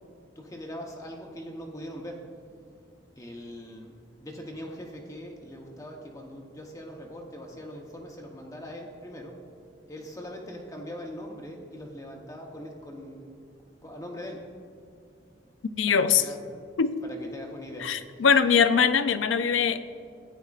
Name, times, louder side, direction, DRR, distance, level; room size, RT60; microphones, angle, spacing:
voice 1, 0.4-2.3 3.2-3.9 4.2-9.4 9.9-13.4 13.8-14.5 15.9-16.6 17.0-17.9, equal, 15° left, 0 dB, 0.8 m, -41 dB
voice 2, 15.8-16.2 16.8-17.0 17.8-19.8, left 6 dB, 90° left, 11 dB, 0.5 m, -22 dB
14.5 x 9.2 x 2.4 m, 2.4 s
head